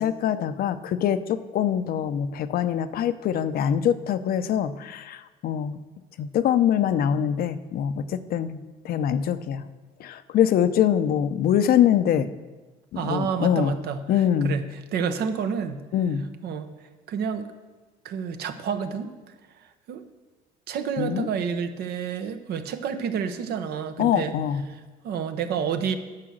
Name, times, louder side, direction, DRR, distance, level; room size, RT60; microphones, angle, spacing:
voice 1, 0.0-5.8 6.2-9.6 10.0-12.3 12.9-13.7 14.1-14.6 15.9-16.3 21.0-21.3 24.0-24.6, left 9 dB, 65° left, 12 dB, 0.6 m, -24 dB
voice 2, 12.9-14.0 14.4-14.6 14.9-15.8 16.4-16.7 17.1-17.5 18.0-20.0 20.7-24.3 24.7-25.9, right 7 dB, 70° right, 9 dB, 1.0 m, -29 dB
9.8 x 6.9 x 6.4 m, 1.3 s
cardioid pair, 110°, 17 cm